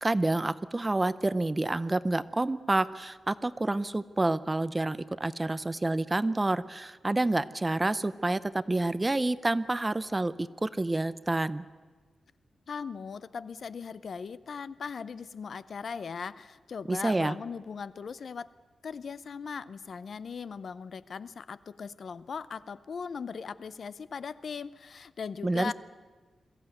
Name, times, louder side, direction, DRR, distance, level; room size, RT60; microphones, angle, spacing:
voice 1, 0.0-8.4 8.7-10.3 10.6-11.6 16.9-17.3 25.4-25.7, right 2 dB, 15° right, 15 dB, 0.5 m, -28 dB
voice 2, 12.7-18.5 18.8-25.7, left 6 dB, 50° left, 17 dB, 0.6 m, -39 dB
22.0 x 15.0 x 9.1 m, 1.4 s
wide cardioid pair, 160°, 0 cm